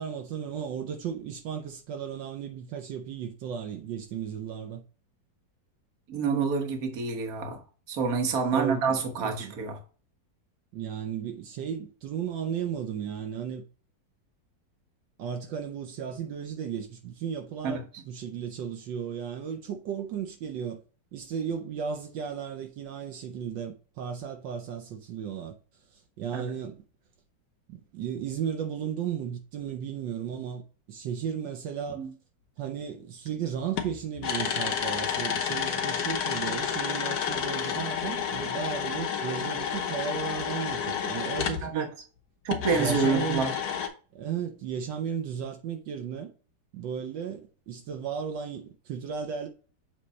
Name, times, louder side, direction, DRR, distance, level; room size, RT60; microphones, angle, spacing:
voice 1, 0.0-4.8 8.5-9.5 10.7-13.6 15.2-20.8 21.1-25.6 25.9-26.8 27.7-30.6 30.9-32.1 32.6-41.9 42.7-43.5 44.1-46.3 46.7-49.5, right 8 dB, 75° right, 1.4 m, -35 dB
voice 2, 6.1-7.6 7.9-9.8 17.6-17.8 26.3-26.5 32.0-32.1 41.6-41.9 42.4-43.5, right 5 dB, 55° right, 1.5 m, -27 dB
sound 1, 33.3-33.4 33.8-41.7 42.5-43.9, left 7 dB, 60° left, 1.3 m, -30 dB
7.6 x 3.3 x 4.1 m
omnidirectional pair, 2.0 m